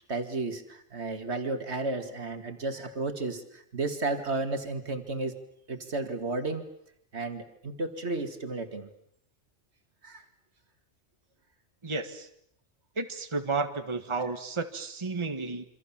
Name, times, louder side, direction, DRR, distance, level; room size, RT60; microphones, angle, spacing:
voice 1, 0.1-5.4 5.7-6.7 7.1-8.9 10.0-10.2, right 3 dB, 70° right, 8 dB, 2.4 m, -33 dB
voice 2, 11.8-12.3 13.0-15.6, right 4 dB, 25° right, 7 dB, 1.6 m, -32 dB
28.0 x 25.5 x 7.4 m, 0.72 s
omnidirectional pair, 1.2 m